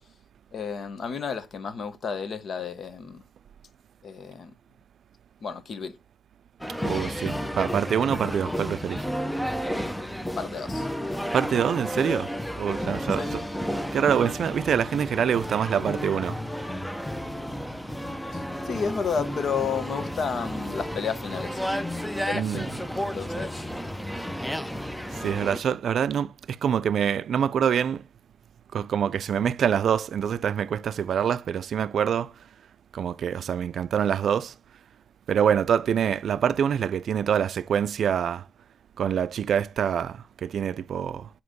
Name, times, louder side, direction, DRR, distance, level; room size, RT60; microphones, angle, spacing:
voice 1, 0.5-3.2 4.0-4.5 5.4-5.9 10.4-10.9 13.2-13.3 18.3-21.8 22.3-22.7 23.0-23.6, left 6 dB, 55° left, 0.8 m, -32 dB
sound 1, 6.6-25.6, equal, 5° left, 0.5 m, -32 dB
voice 2, 6.8-9.0 11.3-12.3 12.6-13.4 13.9-16.4 22.3-22.7 25.1-28.0 28.7-32.3 32.9-34.5 35.3-38.4 39.0-41.3, right 8 dB, 65° right, 0.3 m, -25 dB
7.8 x 2.9 x 5.1 m
cardioid pair, 120°, 0 cm